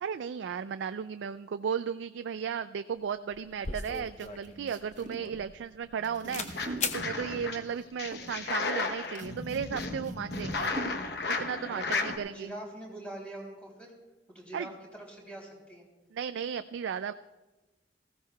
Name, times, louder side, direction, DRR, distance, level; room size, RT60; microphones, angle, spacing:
voice 1, 0.0-10.7 11.3-12.5 14.5-14.7 16.1-17.1, right 7 dB, 85° right, 10 dB, 0.3 m, -35 dB
sound 1, 2.9-3.0 3.3-6.0 6.3-6.5 6.8-7.0, left 5 dB, 40° left, 0.7 m, -37 dB
sound 2, 3.4-11.3, right 1 dB, 45° right, 1.3 m, -46 dB
sound 3, 6.2-7.6 8.0-12.2, left 3 dB, 60° left, 1.0 m, -34 dB
voice 2, 11.7-13.9 14.3-15.8, right 1 dB, 5° left, -1 dB, 3.1 m, -44 dB
19.0 x 15.5 x 2.3 m, 1.2 s
head